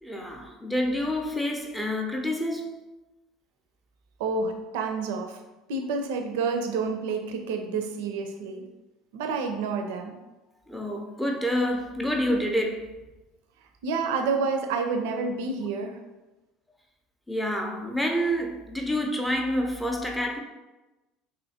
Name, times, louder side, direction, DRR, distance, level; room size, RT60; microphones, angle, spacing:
voice 1, 0.0-2.8 10.7-12.9 17.3-20.4, equal, 5° left, 1 dB, 0.5 m, -28 dB
voice 2, 4.2-5.4 5.7-8.6 9.1-10.1 13.8-16.0, right 4 dB, 65° right, 4 dB, 0.4 m, -29 dB
3.1 x 2.7 x 2.7 m, 1.0 s
figure-of-eight pair, 65°, 0 cm